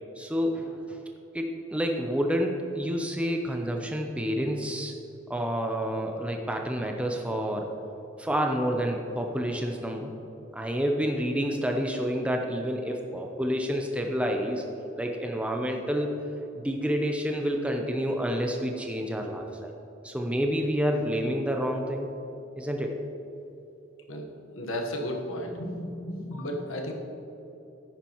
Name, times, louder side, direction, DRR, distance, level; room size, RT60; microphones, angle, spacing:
voice 1, 0.2-1.0 1.3-4.9 5.3-7.7 8.2-10.1 10.5-14.6 15.0-16.2 16.6-19.7 20.0-22.1 22.6-23.0, equal, 5° right, 2 dB, 0.5 m, -29 dB
voice 2, 24.5-26.9, left 1 dB, 85° left, 2 dB, 1.2 m, -33 dB
10.0 x 9.4 x 3.0 m, 3.0 s
head